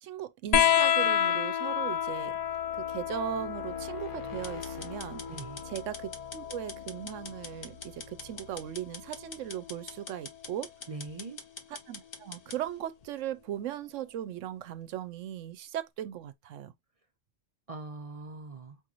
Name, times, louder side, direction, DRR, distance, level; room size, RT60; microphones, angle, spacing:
voice 1, 0.0-2.4 2.7-5.2 5.7-10.7 11.9-16.7, right 11 dB, 85° right, 1.0 m, -38 dB
sound 1, 0.5-7.6 9.0-9.8 11.1-11.2, left 9 dB, 90° left, 0.3 m, -30 dB
sound 2, 1.6-10.4, left 3 dB, 30° left, 1.0 m, -48 dB
sound 3, 4.4-12.6, left 4 dB, 50° left, 1.1 m, -45 dB
voice 2, 5.3-5.7 10.9-11.4 17.7-18.8, right 3 dB, 40° right, 0.5 m, -41 dB
5.2 x 3.0 x 2.4 m
omnidirectional pair, 1.3 m